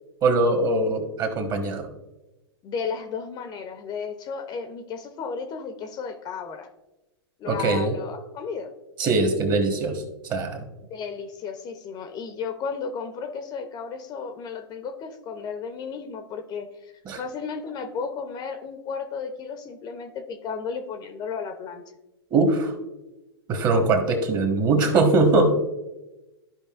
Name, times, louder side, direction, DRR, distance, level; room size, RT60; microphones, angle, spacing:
voice 1, 0.2-1.9 7.4-7.9 9.0-10.6 17.0-17.2 22.3-22.7 23.5-25.5, right 3 dB, 30° right, 5 dB, 1.4 m, -22 dB
voice 2, 2.6-6.7 7.4-8.7 10.9-16.7 17.2-21.8, left 5 dB, 30° left, 8 dB, 0.8 m, -34 dB
13.5 x 5.2 x 2.5 m, 1.0 s
hypercardioid pair, 110°, 13 cm